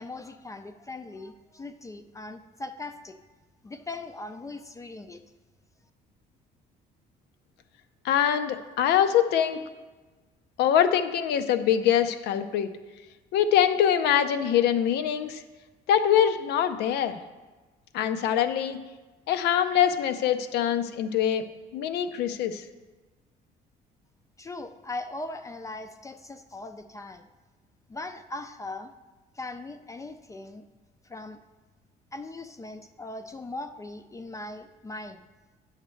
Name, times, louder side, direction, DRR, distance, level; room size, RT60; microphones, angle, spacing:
voice 1, 0.0-3.2 3.6-5.2 24.4-27.3 27.9-28.9 29.3-30.6 31.0-31.4 32.1-35.2, left 2 dB, 20° left, 8 dB, 0.4 m, -39 dB
voice 2, 8.0-9.6 10.6-12.7 13.3-15.4 15.9-17.2 17.9-18.8 19.3-21.4 21.7-22.6, left 9 dB, 80° left, 9 dB, 0.6 m, -24 dB
9.8 x 6.6 x 3.2 m, 1.2 s
cardioid pair, 110°, 17 cm